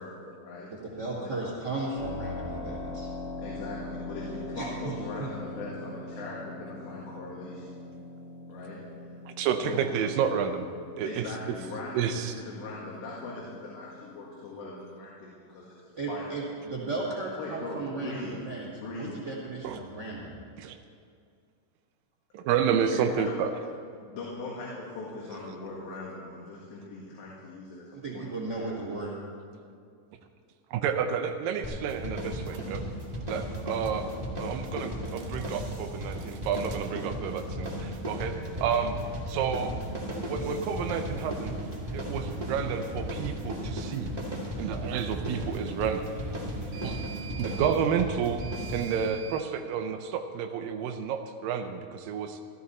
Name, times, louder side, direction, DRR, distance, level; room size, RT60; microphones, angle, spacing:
voice 1, 0.0-0.7 1.2-1.3 3.4-7.7 8.5-9.1 9.6-9.9 11.0-15.7 16.1-16.4 17.4-18.3 18.7-19.2 22.9-23.4 24.0-28.7, left 3 dB, 90° left, -4 dB, 4.0 m, -40 dB
voice 2, 0.7-3.1 4.5-4.9 5.2-5.3 16.0-20.4 27.9-29.2, right 2 dB, 30° right, -5 dB, 2.2 m, -35 dB
Keyboard (musical), 2.0-14.5, left 2 dB, 70° left, 3.9 m, -42 dB
voice 3, 9.3-10.7 11.0-11.3 11.9-12.3 19.6-19.8 20.6-20.8 22.3-23.7 30.7-32.8 33.3-34.1 34.4-39.0 39.3-39.8 40.1-41.6 41.9-44.1 44.6-46.1 46.8-47.0 47.3-48.4 48.7-52.4, right 7 dB, 90° right, 5 dB, 1.9 m, -30 dB
sound 1, 31.6-49.1, equal, 50° right, 0.4 m, -36 dB
sound 2, 32.5-32.7 33.7-34.0 34.9-35.6 36.1-36.8 38.4-49.5, right 4 dB, 70° right, 2.9 m, -46 dB
15.5 x 13.5 x 4.2 m, 2.3 s
omnidirectional pair, 4.8 m